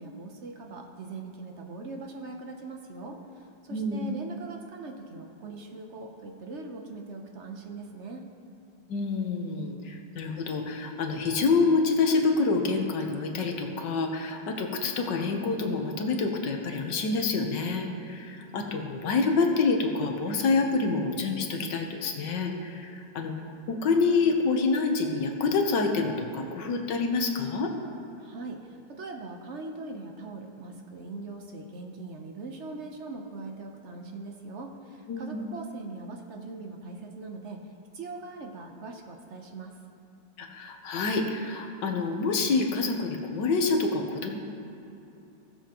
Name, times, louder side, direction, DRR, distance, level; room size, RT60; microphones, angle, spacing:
voice 1, 0.0-8.3 28.2-37.6 37.9-39.8, right 3 dB, 55° right, 3 dB, 0.8 m, -41 dB
voice 2, 3.7-4.1 8.9-23.3 23.7-27.7 35.1-35.4 40.4-44.4, left 4 dB, 75° left, 3 dB, 1.5 m, -27 dB
17.0 x 7.2 x 2.9 m, 2.9 s
omnidirectional pair, 1.9 m